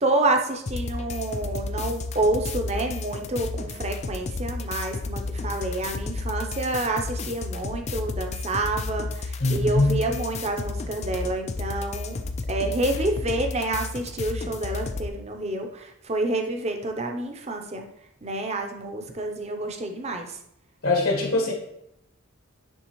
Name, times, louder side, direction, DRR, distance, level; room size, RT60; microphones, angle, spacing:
voice 1, 0.0-12.2 12.5-17.8 18.2-20.4, right 2 dB, 30° right, 4 dB, 0.6 m, -28 dB
sound 1, 0.7-15.1, left 3 dB, 30° left, 0.3 m, -32 dB
voice 2, 9.4-9.9 20.8-21.5, left 2 dB, 75° left, -1 dB, 1.6 m, -22 dB
9.9 x 3.4 x 3.1 m, 0.77 s
head